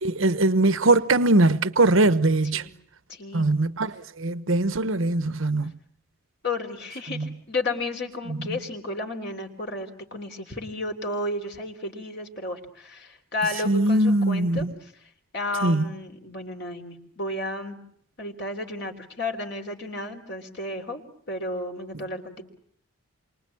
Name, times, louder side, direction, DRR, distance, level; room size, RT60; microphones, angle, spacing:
voice 1, 0.0-2.6 3.3-3.9 4.2-5.7 7.2-7.3 13.7-14.7 15.6-15.8, right 2 dB, 70° right, 1.1 m, -21 dB
voice 2, 3.1-3.5 6.4-14.9 15.3-17.8 18.2-21.0 21.3-22.4, left 2 dB, 50° left, 3.6 m, -32 dB
28.5 x 24.0 x 8.6 m
head